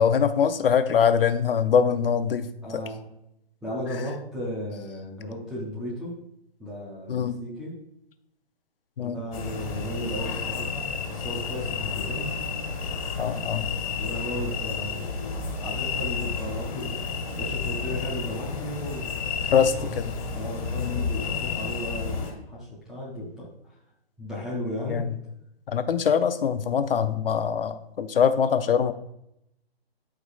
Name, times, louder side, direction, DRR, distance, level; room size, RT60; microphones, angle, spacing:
voice 1, 0.0-2.8 7.1-7.4 9.0-9.2 13.2-13.7 19.5-20.1 20.8-21.1 24.8-25.2 25.7-28.9, left 7 dB, 60° left, 11 dB, 0.7 m, -23 dB
voice 2, 2.6-3.0 3.6-6.1 6.6-7.7 9.0-12.3 14.0-15.2 15.6-17.0 17.3-19.9 20.3-23.8 24.2-25.0, equal, ahead, -7 dB, 0.5 m, -35 dB
sound 1, 9.3-22.3, left 5 dB, 35° left, 1.8 m, -31 dB
12.5 x 4.9 x 2.4 m, 0.79 s
hypercardioid pair, 150°, 31 cm